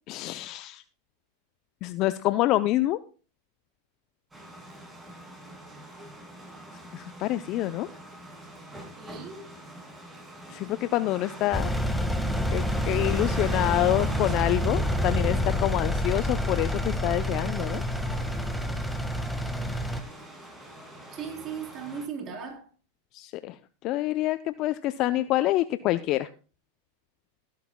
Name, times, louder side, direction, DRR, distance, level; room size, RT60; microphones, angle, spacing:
voice 1, 0.1-0.8 1.8-3.0 6.9-7.9 10.5-11.7 12.5-17.8 23.1-23.6 23.8-26.3, left 15 dB, 45° left, 0.6 m, -27 dB
sound 1, 4.3-22.1, right 1 dB, 10° right, 7.9 m, -44 dB
voice 2, 9.0-9.5 21.1-22.7, right 6 dB, 35° right, 3.5 m, -37 dB
Engine, 11.5-20.0, left 1 dB, 5° left, 1.6 m, -28 dB
18.0 x 11.5 x 2.3 m
hypercardioid pair, 105°, 0 cm